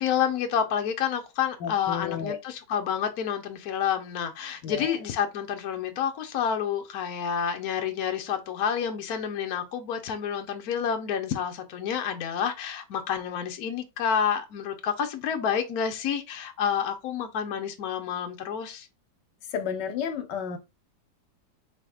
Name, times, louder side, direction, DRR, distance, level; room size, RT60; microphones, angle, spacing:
voice 1, 0.0-18.9, left 8 dB, 65° left, 1.3 m, -29 dB
voice 2, 1.6-2.4 4.6-5.0 19.5-20.6, left 7 dB, 80° left, 1.4 m, -32 dB
5.0 x 4.1 x 2.4 m
omnidirectional pair, 1.8 m